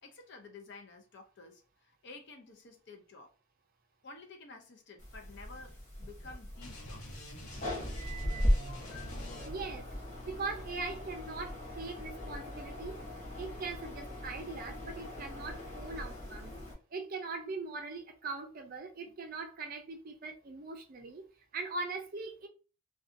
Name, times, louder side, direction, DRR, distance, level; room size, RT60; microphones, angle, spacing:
voice 1, 0.0-3.3 4.0-7.4 19.1-19.2, left 3 dB, 50° left, 0.5 m, -52 dB
sound 1, 5.0-16.7, equal, 35° left, 0.9 m, -38 dB
sound 2, 6.6-9.8, equal, 85° left, 0.9 m, -48 dB
voice 2, 9.4-9.9 10.2-13.1 13.4-16.5 16.9-21.2 21.5-22.5, right 3 dB, 40° right, 0.4 m, -41 dB
2.6 x 2.3 x 2.5 m
head